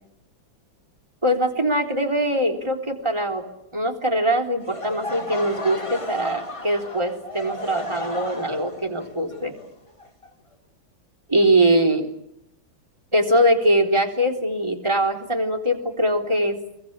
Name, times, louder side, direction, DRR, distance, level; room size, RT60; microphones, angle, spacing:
voice 1, 1.2-3.4 3.7-9.5 11.3-12.0 13.1-16.6, right 1 dB, 15° right, 3 dB, 3.8 m, -22 dB
Laughter / Crowd, 4.6-10.5, left 1 dB, 15° left, 2.1 m, -34 dB
26.0 x 23.5 x 9.0 m, 0.79 s
omnidirectional pair, 2.1 m